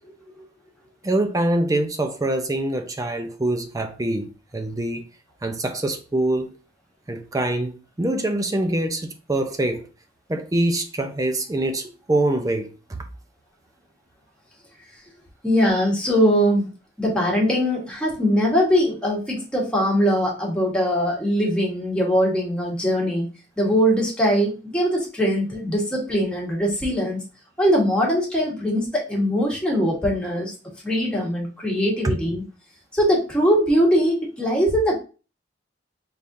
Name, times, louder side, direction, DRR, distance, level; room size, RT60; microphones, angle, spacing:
voice 1, 1.0-5.1 5.4-6.5 7.1-9.9 10.3-13.0, right 1 dB, 20° right, 0.5 m, -24 dB
voice 2, 15.4-16.7 17.0-23.3 23.6-27.2 27.6-30.5 30.8-32.4 32.9-35.0, equal, 5° left, 1.3 m, -21 dB
4.2 x 3.5 x 2.6 m
head